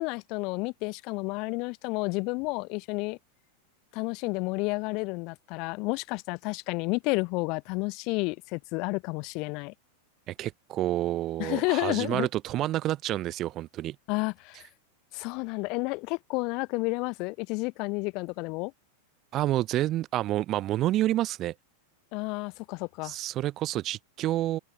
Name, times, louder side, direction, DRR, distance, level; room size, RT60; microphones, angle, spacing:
voice 1, 0.0-3.2 3.9-9.7 11.4-12.3 14.1-14.6 15.1-18.7 22.1-23.1, left 28 dB, 45° left, 0.8 m, -31 dB
voice 2, 10.3-14.0 19.3-21.5 23.0-24.6, right 14 dB, 35° right, 0.7 m, -29 dB
open air
figure-of-eight pair, 90°, 0 cm